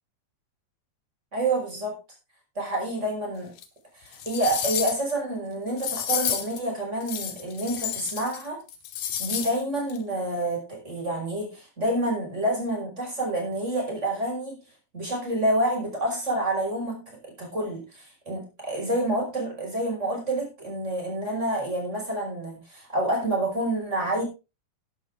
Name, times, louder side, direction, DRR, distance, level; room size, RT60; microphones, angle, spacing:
voice 1, 1.3-2.0 2.6-3.5 4.0-8.6 9.2-14.6 14.9-24.2, right 1 dB, 20° right, 5.7 m, -28 dB
sound 1, 3.6-3.7 4.1-5.1 5.8-6.6 7.0-8.4 8.7-9.6 9.9-10.0, left 9 dB, 85° left, 2.8 m, -30 dB
12.0 x 11.5 x 3.7 m
omnidirectional pair, 3.4 m